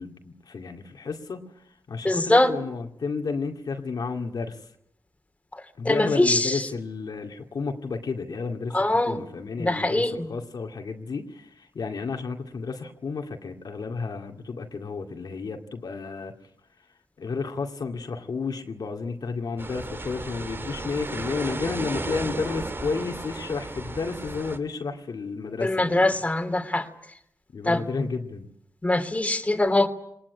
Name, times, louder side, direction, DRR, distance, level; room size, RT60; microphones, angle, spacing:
voice 1, 0.0-1.4 1.9-4.6 5.8-16.3 17.2-26.2 27.5-28.5, left 4 dB, 65° left, 3 dB, 2.3 m, -32 dB
voice 2, 2.0-2.5 5.8-6.6 8.7-9.2 9.6-10.3 25.6-26.8 27.6-27.8 28.8-29.9, left 2 dB, 20° left, 7 dB, 2.8 m, -22 dB
sound 1, 19.6-24.6, right 2 dB, 30° right, 2.5 m, -34 dB
20.5 x 19.5 x 9.7 m, 0.74 s
cardioid pair, 55°, 7 cm